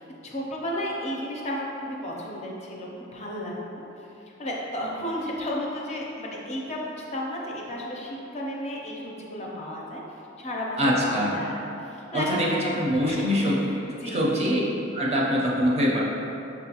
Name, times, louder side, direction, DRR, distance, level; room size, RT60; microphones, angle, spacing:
voice 1, 0.0-3.8 4.4-10.0 10.4-12.8 13.0-14.5, equal, 35° left, -3 dB, 0.5 m, -33 dB
voice 2, 10.8-11.3 12.1-13.6 14.1-14.6 14.9-16.0, equal, 35° right, -4 dB, 0.5 m, -24 dB
5.7 x 2.2 x 2.8 m, 2.9 s
head